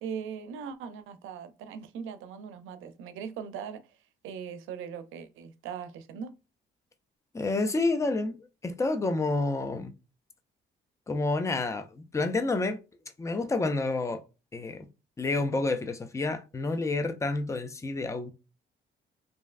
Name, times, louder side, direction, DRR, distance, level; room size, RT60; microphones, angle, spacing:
voice 1, 0.0-3.8 4.2-6.3, right 7 dB, 90° right, 0.5 m, -40 dB
voice 2, 7.3-9.9 11.1-12.8 13.2-14.2 14.5-14.9 15.2-18.3, left 3 dB, 15° left, 0.4 m, -29 dB
3.0 x 2.5 x 2.4 m
cardioid pair, 90°, 20 cm